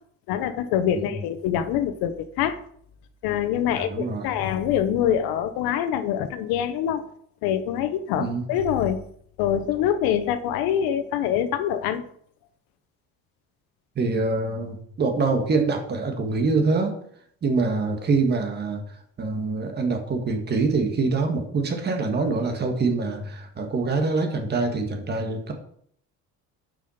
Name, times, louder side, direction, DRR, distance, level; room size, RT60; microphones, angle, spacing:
voice 1, 0.3-2.6 3.2-7.0 7.4-9.0 9.4-12.0, left 9 dB, 85° left, 11 dB, 1.0 m, -25 dB
voice 2, 3.7-4.3 8.2-8.4 14.0-16.9 17.4-18.8 19.2-25.5, right 3 dB, 30° right, 4 dB, 1.5 m, -25 dB
10.5 x 5.7 x 4.3 m, 0.65 s
cardioid pair, 160°, 35 cm